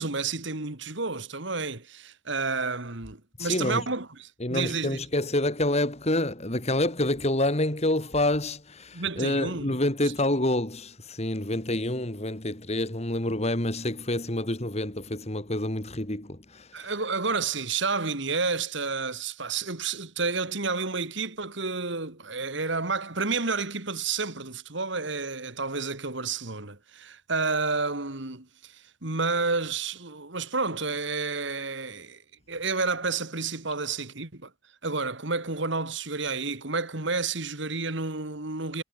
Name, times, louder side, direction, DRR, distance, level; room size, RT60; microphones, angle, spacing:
voice 1, 0.0-4.1 4.5-5.0 8.9-9.7 16.7-32.2 32.5-34.5 34.8-38.8, right 4 dB, 60° right, 2.5 m, -30 dB
voice 2, 3.4-3.9 4.4-16.9, left 1 dB, 30° left, 2.8 m, -27 dB
head